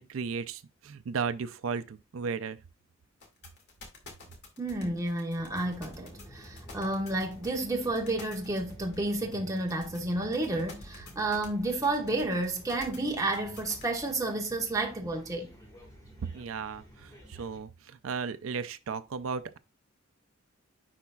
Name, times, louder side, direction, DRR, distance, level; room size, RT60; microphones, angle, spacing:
voice 1, 0.0-2.6 16.3-19.6, right 5 dB, 80° right, 0.4 m, -35 dB
sound 1, 3.2-14.1, left 3 dB, 55° left, 1.9 m, -49 dB
voice 2, 4.6-15.5, right 2 dB, 15° right, 1.2 m, -31 dB
sound 2, 5.4-17.6, equal, 15° left, 1.6 m, -51 dB
10.0 x 4.0 x 2.3 m
head